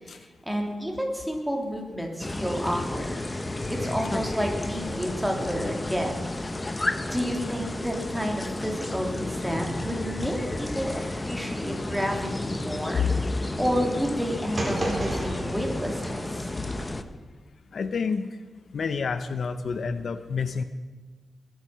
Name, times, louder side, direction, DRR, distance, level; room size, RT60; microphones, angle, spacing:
voice 1, 0.0-3.1 3.7-6.3 6.7-13.0 13.6-16.5, equal, 5° right, 1 dB, 2.8 m, -30 dB
sound 1, 2.2-17.0, left 2 dB, 20° left, 0.8 m, -32 dB
sound 2, 14.5-16.8, right 1 dB, 30° right, 3.5 m, -32 dB
voice 2, 17.7-18.4 18.7-20.6, left 5 dB, 65° left, 11 dB, 0.7 m, -28 dB
21.0 x 9.5 x 5.8 m, 1.4 s
wide cardioid pair, 105°, 0 cm